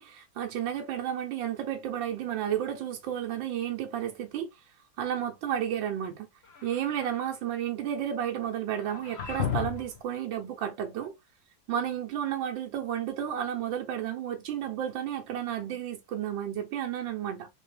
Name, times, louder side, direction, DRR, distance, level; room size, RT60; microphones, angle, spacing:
voice 1, 0.0-4.5 5.0-6.3 6.6-11.1 11.7-17.5, right 10 dB, 80° right, 1.5 m, -32 dB
sound 1, 6.4-7.3 8.8-10.0, left 8 dB, 45° left, 0.9 m, -34 dB
4.1 x 3.3 x 3.2 m
omnidirectional pair, 2.1 m